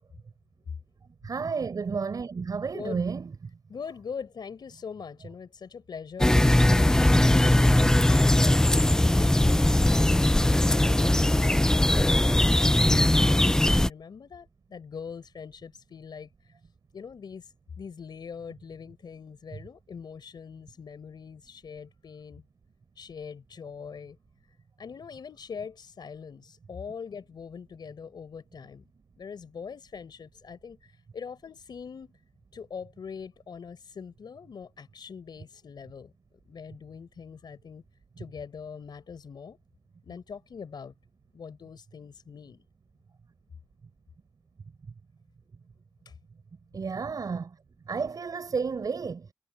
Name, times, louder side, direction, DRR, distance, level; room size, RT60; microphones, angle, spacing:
voice 1, 1.2-3.3 46.7-47.5 47.9-49.3, right 5 dB, 60° right, 5.1 m, -31 dB
voice 2, 3.7-7.5 8.1-16.3 16.9-22.4 23.0-24.2 24.8-28.8 29.2-32.1 32.5-36.1 36.4-37.8 38.2-39.6 40.0-40.9 41.3-42.6 46.0-46.1, left 6 dB, 80° left, 4.8 m, -42 dB
sound 1, 6.2-13.9, left 1 dB, 10° left, 0.4 m, -20 dB
wide cardioid pair, 155°, 7 cm